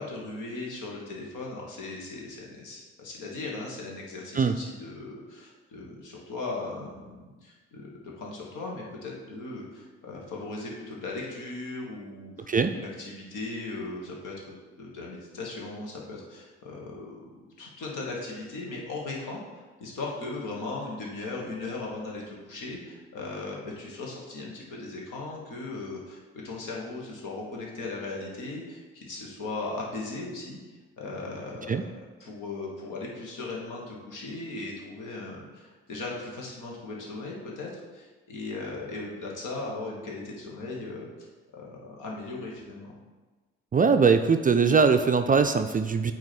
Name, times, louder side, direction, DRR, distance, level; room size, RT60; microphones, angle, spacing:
voice 1, 0.0-30.6 31.0-41.1 41.5-43.0, left 3 dB, 65° left, -2 dB, 1.6 m, -38 dB
voice 2, 43.7-46.1, right 5 dB, 25° right, 7 dB, 0.4 m, -21 dB
8.7 x 3.0 x 4.3 m, 1.3 s
hypercardioid pair, 40°, 34 cm